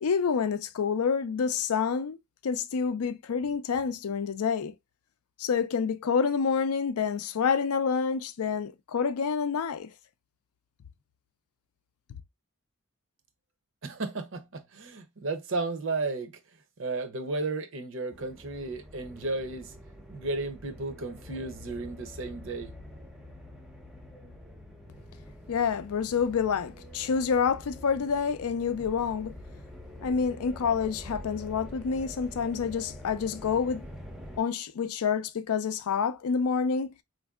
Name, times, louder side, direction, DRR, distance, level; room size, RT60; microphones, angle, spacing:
voice 1, 0.0-2.2 2.4-4.7 5.4-9.9 25.5-29.3 30.0-33.8 34.4-36.9, left 6 dB, 80° left, 0.4 m, -28 dB
voice 2, 13.8-16.4 16.8-19.7 20.1-22.7, right 3 dB, 60° right, 0.6 m, -34 dB
sound 1, 18.1-34.4, left 1 dB, ahead, 0.5 m, -46 dB
4.2 x 2.6 x 2.3 m
head